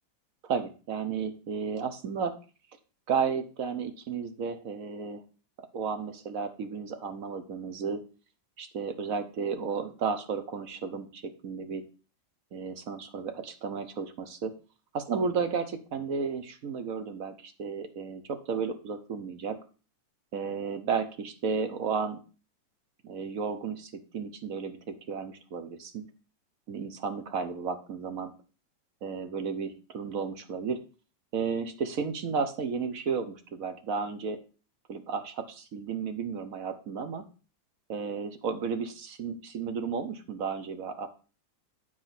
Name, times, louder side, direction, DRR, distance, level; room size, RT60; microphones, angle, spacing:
voice 1, 0.4-2.4 3.1-5.2 5.7-8.0 8.6-11.8 12.5-14.5 14.9-19.6 20.3-22.2 23.0-26.0 26.7-28.3 29.0-30.8 31.3-34.4 34.9-37.2 37.9-41.1, right 6 dB, 55° right, 9 dB, 1.2 m, -33 dB
9.4 x 4.6 x 5.8 m, 0.36 s
omnidirectional pair, 2.0 m